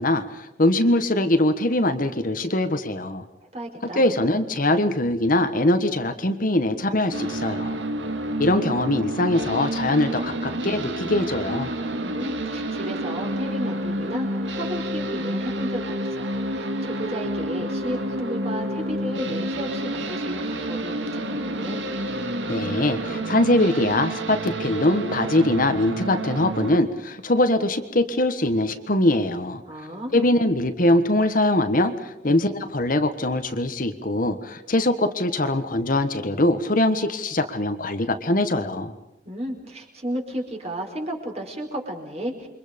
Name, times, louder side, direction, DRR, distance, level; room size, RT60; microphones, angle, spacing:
voice 1, 0.0-3.2 3.8-7.8 8.4-11.7 22.5-29.6 30.1-38.9, left 1 dB, 45° left, 8 dB, 1.4 m, -22 dB
voice 2, 3.5-4.0 12.0-21.8 29.6-30.3 39.2-42.5, equal, 35° right, 1 dB, 5.0 m, -33 dB
sound 1, 7.1-26.8, right 1 dB, 75° right, 2.1 m, -29 dB
29.0 x 24.5 x 5.3 m, 0.88 s
head